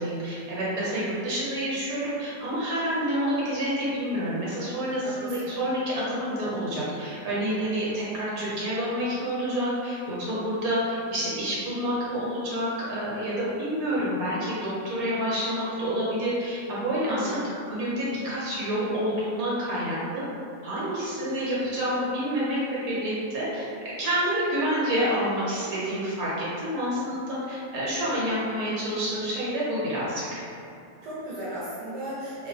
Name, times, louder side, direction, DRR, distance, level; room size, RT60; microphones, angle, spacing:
voice 1, 0.0-17.4 17.7-20.2 20.6-22.6 22.9-23.6 24.0-30.4, equal, 65° right, -8 dB, 1.4 m, -28 dB
voice 2, 5.0-5.6 17.1-17.5 31.0-32.5, right 1 dB, 85° right, -8 dB, 1.3 m, -35 dB
3.0 x 2.1 x 3.8 m, 2.5 s
omnidirectional pair, 1.7 m